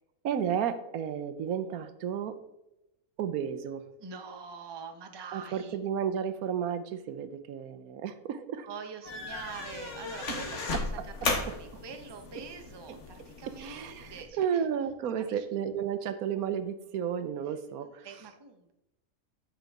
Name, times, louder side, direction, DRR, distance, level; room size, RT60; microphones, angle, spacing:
voice 1, 0.2-2.4 3.2-3.8 5.3-8.7 10.3-10.4 10.7-11.3 11.7-11.8 12.9-13.0 13.5-18.1, right 8 dB, 80° right, 12 dB, 1.2 m, -33 dB
voice 2, 4.0-5.8 8.7-10.8 11.2-14.6 15.2-15.5 17.5-17.6 18.0-18.7, right 5 dB, 25° right, 6 dB, 0.6 m, -44 dB
sound 1, 9.0-14.2, left 3 dB, 55° left, 1.7 m, -36 dB
8.9 x 7.7 x 3.5 m, 0.90 s
omnidirectional pair, 1.5 m